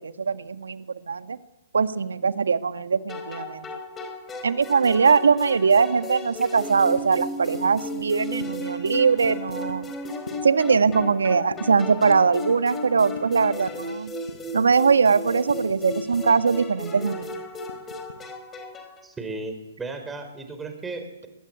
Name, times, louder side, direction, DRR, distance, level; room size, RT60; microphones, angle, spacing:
voice 1, 0.0-1.4 1.7-3.6 4.4-9.8 10.4-14.1 14.5-17.3, right 5 dB, 80° right, 10 dB, 1.7 m, -21 dB
sound 1, 3.1-19.0, left 1 dB, 15° left, 4.4 m, -35 dB
sound 2, 7.0-7.2 7.5-7.7 7.9-8.1 8.4-8.5 9.2-9.8 10.3-10.5 10.9-11.2 11.5-11.7 12.1-12.2 12.5-12.7 13.2-13.3 13.7-13.8 14.3-14.5 15.0-16.4 16.7-16.8 17.2-18.2, left 3 dB, 85° left, 4.6 m, -40 dB
voice 2, 19.0-21.3, right 3 dB, 10° right, 6 dB, 4.7 m, -35 dB
23.0 x 21.5 x 9.7 m, 0.94 s
hypercardioid pair, 125°, 0 cm